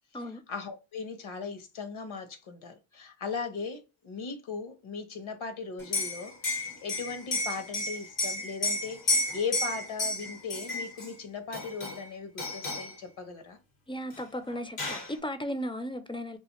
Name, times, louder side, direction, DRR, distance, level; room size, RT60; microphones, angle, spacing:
voice 1, 0.2-13.6, left 5 dB, 70° left, 0.9 m, -38 dB
Liquid, 5.8-11.1 11.5-12.1 12.4-13.0 14.1-14.2 14.5-15.1, left 2 dB, 90° left, 1.1 m, -32 dB
voice 2, 13.9-16.4, equal, 10° left, 0.3 m, -35 dB
2.4 x 2.4 x 2.9 m
cardioid pair, 50°, 49 cm